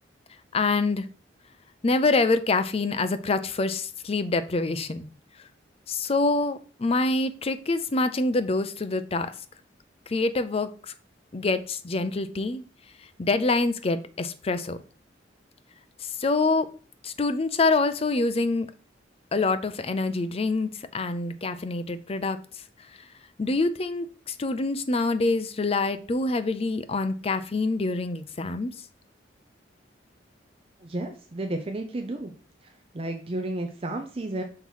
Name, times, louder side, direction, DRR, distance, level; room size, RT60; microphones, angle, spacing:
voice 1, 0.5-1.1 1.8-5.1 5.9-9.3 10.1-10.9 11.3-12.6 13.2-14.8 16.0-16.7 17.0-18.7 19.3-22.4 23.4-28.7, left 3 dB, 35° left, 11 dB, 0.5 m, -26 dB
voice 2, 30.8-32.3 32.9-34.4, right 2 dB, 30° right, 4 dB, 0.5 m, -32 dB
5.7 x 3.1 x 5.4 m, 0.38 s
head